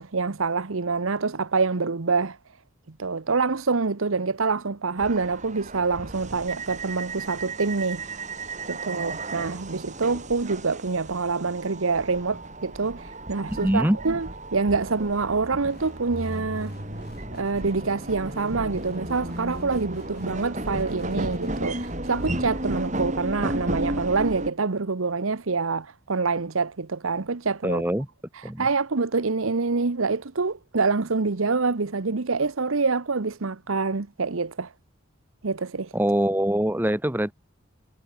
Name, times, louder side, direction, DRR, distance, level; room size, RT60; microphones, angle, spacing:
voice 1, 0.0-2.4 3.0-8.0 8.7-16.7 17.3-27.8 28.6-34.7 35.4-35.9, right 4 dB, 80° right, 1.0 m, -26 dB
sound 1, 5.0-24.5, right 1 dB, 35° right, 5.9 m, -34 dB
voice 2, 13.5-14.0 27.6-28.1 28.4-28.7 35.9-37.3, right 1 dB, 10° right, 1.0 m, -23 dB
sound 2, 15.6-22.5, left 1 dB, 50° left, 5.6 m, -47 dB
head